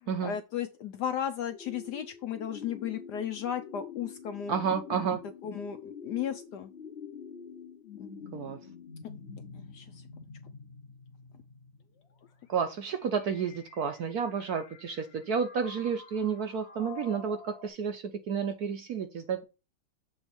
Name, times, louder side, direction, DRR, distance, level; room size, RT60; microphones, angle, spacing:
voice 1, 0.0-4.5 5.4-6.7 8.0-8.3 9.5-10.0, left 9 dB, 70° left, 1.0 m, -35 dB
sound 1, 1.5-17.7, left 6 dB, 45° left, 0.9 m, -47 dB
voice 2, 4.5-5.2 8.3-8.6 12.5-19.4, right 6 dB, 60° right, 1.0 m, -31 dB
7.1 x 3.2 x 5.8 m
omnidirectional pair, 2.2 m